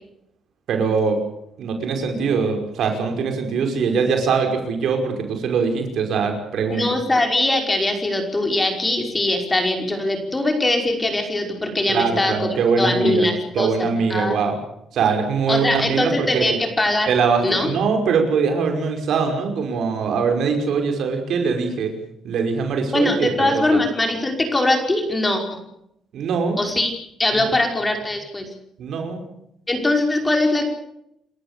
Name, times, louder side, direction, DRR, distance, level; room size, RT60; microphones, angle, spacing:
voice 1, 0.7-1.2 1.6-6.8 11.9-13.3 13.5-14.6 14.9-16.6 17.1-21.9 22.2-23.8 26.1-26.6 27.4-27.5 28.8-29.2, right 5 dB, 70° right, 4 dB, 5.5 m, -22 dB
voice 2, 6.7-12.4 12.8-14.4 15.5-17.1 17.4-17.7 22.9-25.6 26.6-26.9 27.2-28.5 29.7-30.7, left 2 dB, 20° left, 4 dB, 5.4 m, -21 dB
28.5 x 14.5 x 8.3 m, 0.78 s
cardioid pair, 90°, 0 cm